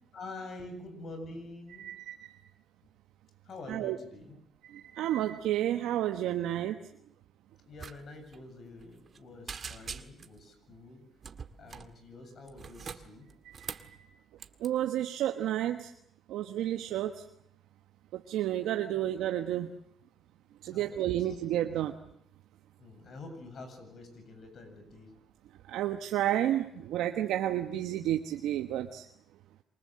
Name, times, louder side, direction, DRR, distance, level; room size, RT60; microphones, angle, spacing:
voice 1, 0.1-1.9 3.4-4.4 7.6-11.0 11.6-13.3 18.9-19.0 20.7-21.4 22.8-25.1, left 2 dB, 55° left, 7 dB, 7.7 m, -47 dB
voice 2, 1.8-2.3 3.7-4.0 4.6-6.8 13.4-14.1 14.6-15.9 16.3-17.2 18.1-19.7 20.6-22.0 25.7-29.1, right 12 dB, 90° right, 6 dB, 1.2 m, -31 dB
sound 1, 7.8-8.0 8.2-8.4 8.8-9.2 9.5-10.4 11.2-11.9 12.5-13.9 14.4-14.7, right 6 dB, 45° right, 1.8 m, -43 dB
27.5 x 24.5 x 7.7 m, 0.70 s
cardioid pair, 90°, 0 cm